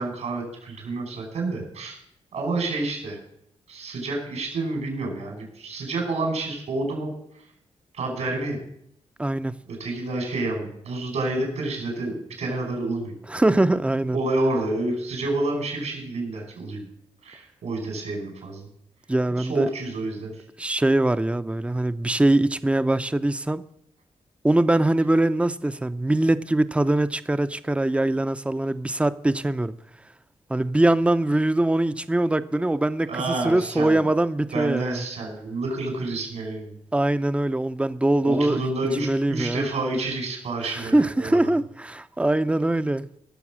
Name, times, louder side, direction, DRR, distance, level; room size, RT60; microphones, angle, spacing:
voice 1, 0.0-2.0 2.3-3.2 3.7-7.1 7.9-8.6 9.7-13.1 14.1-16.9 17.2-18.7 19.3-20.4 33.1-34.1 34.5-36.8 38.2-41.5, right 2 dB, 80° right, 5.3 m, -29 dB
voice 2, 9.2-9.6 13.3-14.2 19.1-19.7 20.6-23.6 24.4-29.7 30.5-35.0 36.9-38.6 39.0-39.6 40.6-43.1, right 1 dB, 10° right, 0.6 m, -22 dB
17.0 x 7.0 x 6.3 m
cardioid pair, 80°, 11 cm